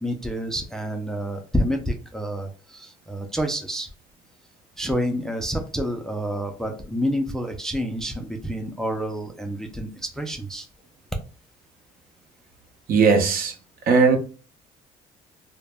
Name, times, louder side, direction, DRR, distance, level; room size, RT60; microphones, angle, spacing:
voice 1, 0.0-3.9 4.8-10.7, equal, 5° left, 3 dB, 0.3 m, -28 dB
voice 2, 12.9-13.5 13.9-14.2, right 5 dB, 60° right, 4 dB, 0.7 m, -17 dB
2.0 x 2.0 x 3.3 m, 0.38 s
cardioid pair, 110°, 17 cm